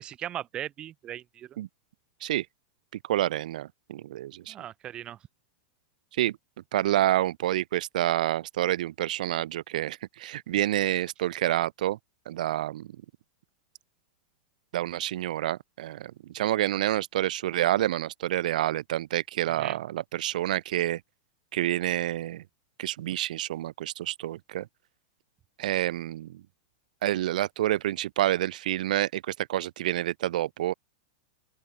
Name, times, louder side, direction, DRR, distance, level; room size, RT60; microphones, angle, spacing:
voice 1, 0.0-1.6 4.5-5.2 19.6-19.8, right 11 dB, 20° right, 1.0 m, -38 dB
voice 2, 3.0-4.5 6.2-6.4 6.7-12.0 12.3-12.9 14.7-21.0 21.5-22.4 22.8-24.7 25.6-26.4 27.0-30.7, right 13 dB, 70° right, 0.3 m, -28 dB
open air
supercardioid pair, 165°, 4 cm